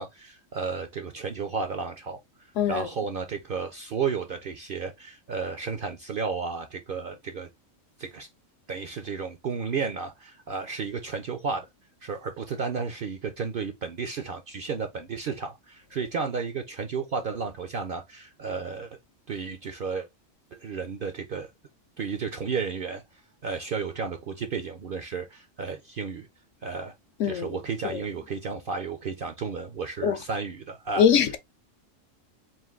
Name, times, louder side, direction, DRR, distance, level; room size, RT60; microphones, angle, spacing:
voice 1, 0.0-2.2 2.7-7.5 8.0-8.3 8.7-11.7 12.0-19.0 19.3-20.1 20.5-21.5 22.0-23.0 23.4-26.3 26.6-26.9 27.2-31.0, right 5 dB, 60° right, 0.6 m, -33 dB
voice 2, 31.0-31.4, left 8 dB, 70° left, 0.9 m, -22 dB
4.4 x 2.5 x 3.5 m
omnidirectional pair, 1.4 m